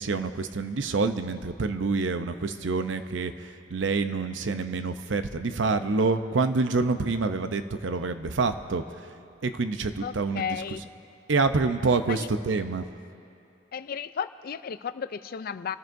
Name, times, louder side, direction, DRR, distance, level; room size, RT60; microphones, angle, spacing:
voice 1, 0.0-3.3 3.7-8.8 9.4-10.6 11.3-12.9, right 4 dB, 80° right, 9 dB, 0.6 m, -27 dB
voice 2, 10.0-10.8 12.1-12.3 13.7-15.8, left 7 dB, 55° left, 13 dB, 0.4 m, -34 dB
28.0 x 14.0 x 2.6 m, 2.6 s
head